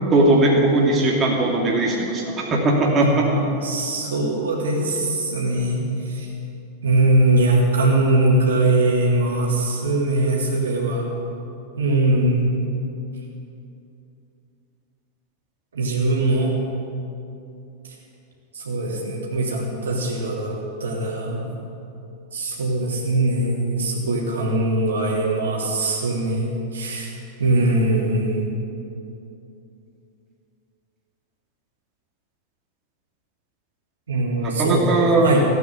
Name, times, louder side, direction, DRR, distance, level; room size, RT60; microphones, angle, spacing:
voice 1, 0.1-3.3 34.4-35.3, right 2 dB, 25° right, -2 dB, 2.6 m, -19 dB
voice 2, 2.9-6.3 6.8-11.1 11.8-12.7 15.7-16.6 18.5-21.5 22.3-27.1 27.4-28.5 34.1-35.5, right 2 dB, 70° right, -3 dB, 3.4 m, -21 dB
16.0 x 9.3 x 9.2 m, 2.7 s
figure-of-eight pair, 90°, 0 cm